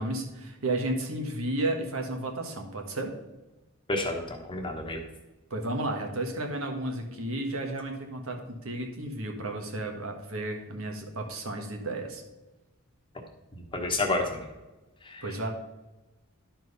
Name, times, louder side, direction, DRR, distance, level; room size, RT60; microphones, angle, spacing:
voice 1, 0.0-3.1 5.5-12.2 15.2-15.5, right 1 dB, 70° right, 3 dB, 1.5 m, -32 dB
voice 2, 3.9-5.0 13.7-14.4 15.0-15.5, left 2 dB, 20° left, 2 dB, 1.2 m, -30 dB
11.5 x 4.5 x 5.6 m, 1.1 s
head